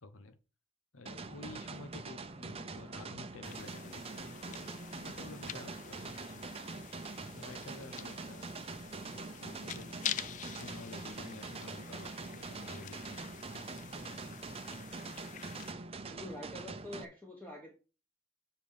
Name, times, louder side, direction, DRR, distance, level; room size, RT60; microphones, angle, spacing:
voice 1, 0.0-0.4 0.9-6.5 7.3-8.5 9.0-10.3 10.6-13.2 13.5-14.4, left 3 dB, 80° left, 9 dB, 0.9 m, -51 dB
sound 1, 1.1-17.1, right 3 dB, 30° right, 0.6 m, -44 dB
sound 2, 3.4-15.7, left 10 dB, 40° left, 0.3 m, -46 dB
voice 2, 16.1-17.7, left 1 dB, 10° left, -1 dB, 1.3 m, -46 dB
7.2 x 4.5 x 5.2 m, 0.33 s
head